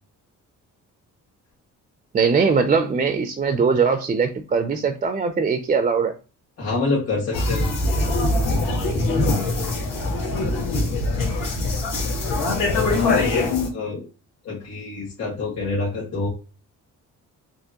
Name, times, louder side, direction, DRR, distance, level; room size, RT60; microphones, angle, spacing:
voice 1, 2.1-6.2, right 5 dB, 25° right, 0.4 m, -21 dB
voice 2, 6.6-7.7 9.2-9.5 12.9-14.1 14.4-16.3, left 3 dB, 50° left, 1.6 m, -27 dB
sound 1, 7.3-13.7, left 2 dB, 85° left, 1.9 m, -22 dB
4.4 x 2.9 x 2.8 m
cardioid pair, 130°, 31 cm